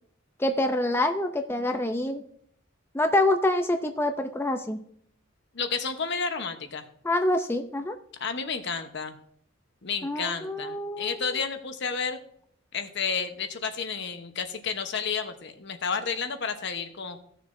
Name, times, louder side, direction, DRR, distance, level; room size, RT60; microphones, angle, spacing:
voice 1, 0.4-2.2 2.9-4.8 7.0-8.0 10.0-11.4, left 1 dB, 10° left, 6 dB, 0.5 m, -26 dB
voice 2, 5.5-6.9 8.2-9.2 9.8-12.2 12.7-17.2, left 5 dB, 65° left, 7 dB, 1.0 m, -31 dB
17.0 x 6.6 x 2.6 m, 0.65 s
head